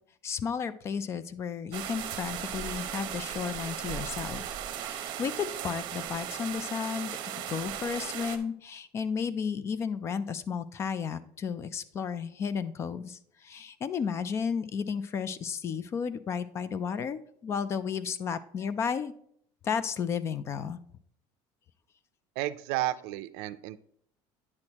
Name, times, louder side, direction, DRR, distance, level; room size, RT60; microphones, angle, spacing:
voice 1, 0.2-4.4 4.8-7.2 7.5-13.2 13.4-19.1 19.6-20.8, left 6 dB, 25° left, 15 dB, 0.4 m, -33 dB
sound 1, 1.7-8.4, right 10 dB, 50° right, 0.8 m, -37 dB
voice 2, 22.4-23.8, right 15 dB, 75° right, 14 dB, 0.4 m, -32 dB
9.7 x 6.2 x 2.9 m, 0.65 s
cardioid pair, 160°, 10 cm